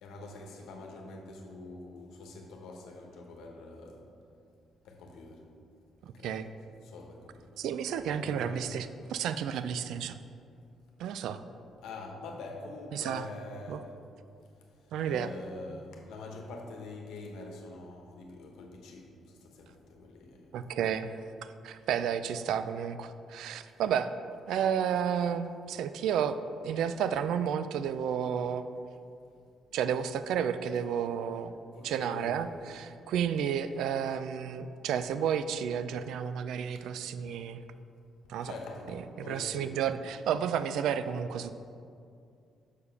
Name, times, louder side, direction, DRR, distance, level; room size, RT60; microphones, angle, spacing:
voice 1, 0.0-4.0 4.8-5.5 6.1-6.4 6.8-7.6 8.1-8.7 11.8-13.9 15.0-19.1 19.4-20.4 31.7-32.5 38.4-39.8, left 3 dB, 85° left, 2 dB, 1.0 m, -45 dB
voice 2, 6.0-6.5 7.6-10.2 11.0-11.4 12.9-13.3 13.7-13.8 14.9-15.3 20.5-21.1 21.6-24.1 24.5-26.4 26.6-28.6 29.7-31.5 31.8-37.6 38.3-38.5 39.3-41.5, right 8 dB, 80° right, 12 dB, 0.3 m, -31 dB
6.6 x 4.8 x 5.6 m, 2.5 s
cardioid pair, 90°, 0 cm